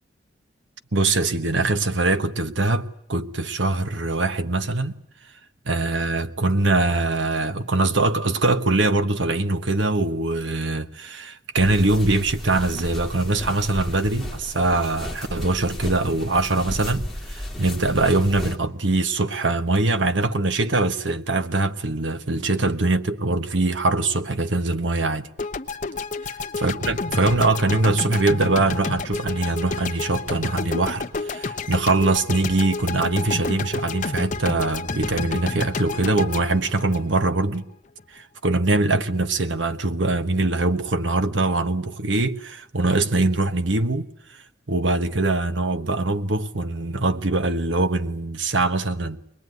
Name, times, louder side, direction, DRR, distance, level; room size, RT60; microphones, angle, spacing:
voice 1, 0.9-5.0 5.7-25.3 26.6-37.7 38.1-44.1 44.7-49.2, right 2 dB, 75° right, 1.2 m, -22 dB
sound 1, 11.6-18.5, left 1 dB, ahead, 2.4 m, -34 dB
sound 2, 25.4-37.6, left 3 dB, 40° left, 0.9 m, -30 dB
22.5 x 20.5 x 9.4 m
head